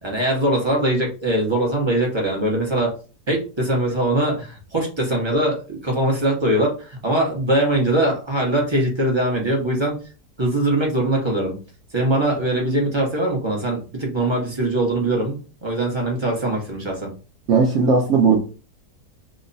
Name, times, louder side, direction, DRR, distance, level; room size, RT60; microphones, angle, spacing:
voice 1, 0.0-2.9 3.3-10.0 10.4-11.5 11.9-17.1, right 1 dB, 30° right, -1 dB, 0.5 m, -22 dB
voice 2, 17.5-18.4, right 5 dB, 60° right, 0 dB, 0.8 m, -16 dB
3.0 x 2.1 x 3.9 m, 0.35 s
omnidirectional pair, 1.8 m